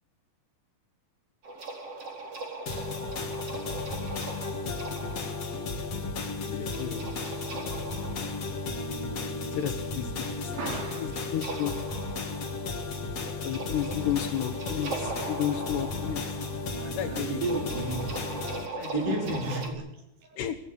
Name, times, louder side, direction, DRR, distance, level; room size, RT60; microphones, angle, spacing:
sound 1, 1.4-19.7, right 3 dB, 35° right, 4.9 m, -41 dB
sound 2, 2.7-18.7, left 3 dB, 40° left, 3.3 m, -34 dB
voice 1, 6.4-7.1 9.5-11.8 13.4-16.4 17.0-17.5 18.7-19.5 20.4-20.6, left 11 dB, 80° left, 5 dB, 3.6 m, -33 dB
voice 2, 8.2-8.5 10.5-11.2 16.8-18.0 18.8-20.4, right 3 dB, 75° right, 4 dB, 6.5 m, -34 dB
25.5 x 16.0 x 9.8 m, 0.79 s
omnidirectional pair, 4.8 m